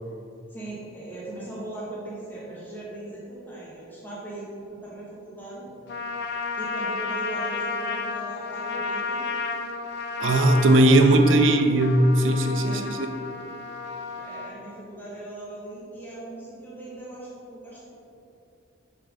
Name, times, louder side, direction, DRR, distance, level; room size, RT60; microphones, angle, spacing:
voice 1, 0.5-5.6 6.6-9.2 12.6-12.9 14.2-17.9, right 2 dB, 10° left, -8 dB, 1.2 m, -39 dB
Trumpet, 5.9-14.6, left 4 dB, 55° left, 0.5 m, -32 dB
voice 2, 10.2-13.1, right 1 dB, 80° right, 6 dB, 0.5 m, -18 dB
6.6 x 4.9 x 3.7 m, 2.6 s
head